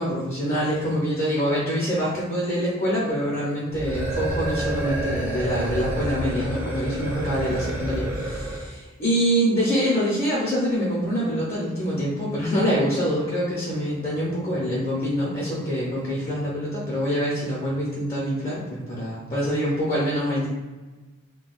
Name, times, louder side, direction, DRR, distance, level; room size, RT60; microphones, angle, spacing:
voice 1, 0.0-20.5, equal, 30° left, -8 dB, 0.7 m, -25 dB
sound 1, 3.7-8.7, right 1 dB, 10° right, 0.3 m, -29 dB
2.3 x 2.3 x 3.9 m, 1.2 s
head